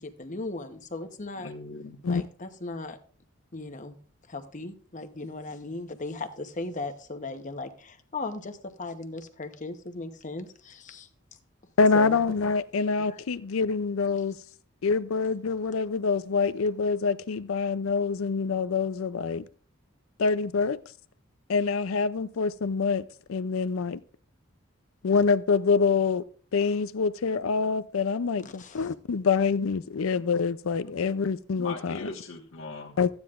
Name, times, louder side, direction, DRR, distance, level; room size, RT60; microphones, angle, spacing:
voice 1, 0.0-1.5 2.1-3.0 3.5-4.0 4.3-11.1 11.9-12.2 13.1-13.2 28.4-28.9, left 2 dB, 40° left, 0.9 m, -37 dB
voice 2, 1.3-2.0 30.8-30.9 31.6-33.0, left 3 dB, 70° left, 1.5 m, -39 dB
voice 3, 11.8-14.4 14.8-19.4 20.2-20.8 21.5-24.0 25.0-26.2 26.5-32.1 33.0-33.1, left 5 dB, 90° left, 0.5 m, -26 dB
14.5 x 9.6 x 2.5 m
head